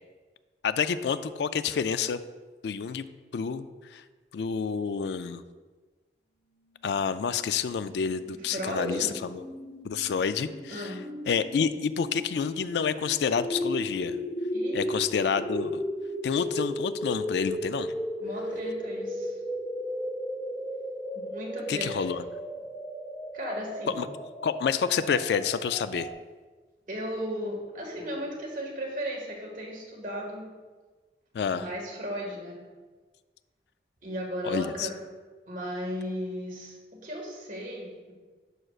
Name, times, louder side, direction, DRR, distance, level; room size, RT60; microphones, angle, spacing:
voice 1, 0.6-2.2 2.6-3.1 3.3-3.7 3.9-4.0 4.3-5.4 6.8-9.4 9.8-10.9 11.3-14.2 14.7-15.8 16.2-17.9 21.7-22.2 24.0-24.1 24.4-26.1 31.3-31.7 34.4-34.9, left 6 dB, 75° left, 13 dB, 0.3 m, -28 dB
sound 1, 7.4-26.1, equal, 5° left, 0.8 m, -36 dB
voice 2, 8.3-9.2 10.7-11.0 14.5-14.9 18.2-19.4 21.1-21.9 23.3-24.0 26.9-30.5 31.5-32.6 34.0-35.0 35.5-36.8 37.0-38.1, equal, 50° right, -2 dB, 1.8 m, -35 dB
11.0 x 6.4 x 2.4 m, 1.3 s
head